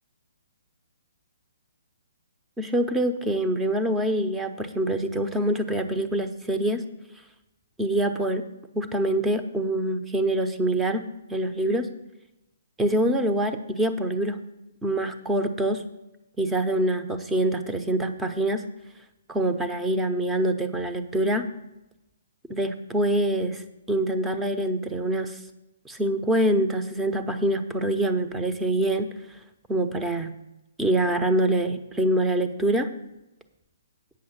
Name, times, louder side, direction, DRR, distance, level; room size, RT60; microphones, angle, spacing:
voice 1, 2.6-6.8 7.8-8.4 8.7-11.9 12.8-14.4 14.8-15.8 16.4-18.6 19.3-21.5 22.5-25.4 25.8-29.1 29.7-30.3 30.8-32.9, right 1 dB, 10° right, 7 dB, 0.8 m, -25 dB
8.7 x 6.0 x 7.4 m, 0.94 s
hypercardioid pair, 135°, 0 cm